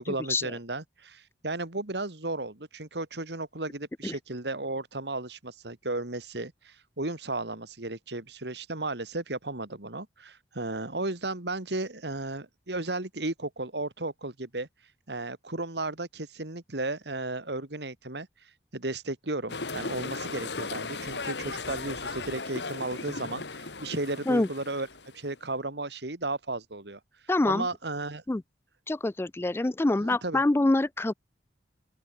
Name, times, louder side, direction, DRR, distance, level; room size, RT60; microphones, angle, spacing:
voice 1, 0.0-14.7 15.1-18.3 18.7-24.9 25.1-27.0 27.5-28.2 30.0-30.4, right 2 dB, 70° right, 2.5 m, -34 dB
sound 1, 19.5-25.4, left 3 dB, 75° left, 2.7 m, -37 dB
voice 2, 27.3-27.7 28.3-28.4 28.9-31.1, left 2 dB, 15° left, 0.3 m, -25 dB
open air
head